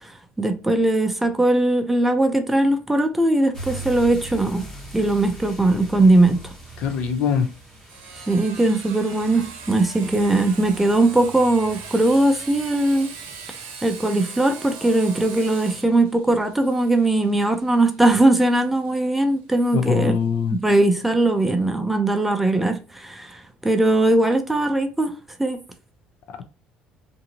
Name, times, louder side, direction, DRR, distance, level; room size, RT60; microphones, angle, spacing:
voice 1, 0.0-4.6 4.9-6.5 8.3-13.1 13.8-20.2 20.5-25.1 25.4-25.6, right 2 dB, 5° right, 0.4 m, -20 dB
sound 1, 3.5-14.0, right 1 dB, 15° left, 1.1 m, -41 dB
Sawing, 4.8-20.2, right 5 dB, 85° right, 0.8 m, -41 dB
voice 2, 6.8-7.5 19.7-20.6, left 7 dB, 60° left, 0.5 m, -22 dB
2.6 x 2.5 x 2.8 m
cardioid pair, 130°, 3 cm